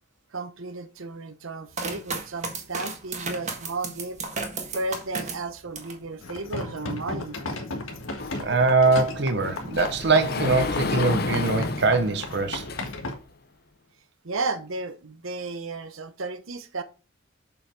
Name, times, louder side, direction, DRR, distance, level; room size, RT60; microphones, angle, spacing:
voice 1, 0.3-4.2 4.7-7.4 14.2-16.8, right 3 dB, 90° right, 0.9 m, -33 dB
sound 1, 1.7-6.0 6.5-7.1, right 4 dB, 35° right, 1.6 m, -34 dB
sound 2, 6.2-13.1, left 2 dB, 90° left, 1.6 m, -36 dB
Sliding door, 8.2-13.2, left 3 dB, 50° left, 0.7 m, -31 dB
voice 2, 8.4-12.7, right 3 dB, 55° right, 0.9 m, -22 dB
7.0 x 5.6 x 4.5 m
head